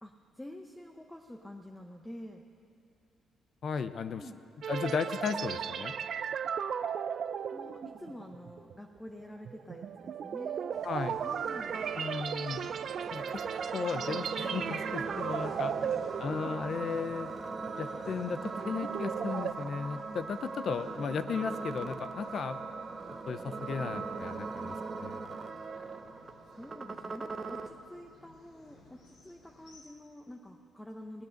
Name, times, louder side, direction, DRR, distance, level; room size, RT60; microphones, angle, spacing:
voice 1, 0.0-2.4 4.2-4.4 7.5-10.7 11.2-11.8 15.7-15.9 18.6-18.8 26.5-31.2, left 1 dB, 10° left, 3 dB, 0.8 m, -48 dB
voice 2, 3.6-4.2 4.7-5.9 10.8-11.2 12.0-12.6 13.1-13.3 13.7-15.7 16.2-17.3 17.8-22.6 23.3-25.3, left 5 dB, 55° left, 11 dB, 0.6 m, -35 dB
sound 1, 4.6-17.1 17.5-17.7 18.2-19.5, right 8 dB, 60° right, 0.4 m, -36 dB
sound 2, 10.7-29.8, left 1 dB, 80° left, 3.4 m, -57 dB
sound 3, 11.7-27.7, right 4 dB, 30° right, 0.8 m, -40 dB
18.0 x 9.2 x 6.5 m, 2.6 s
cardioid pair, 90°, 0 cm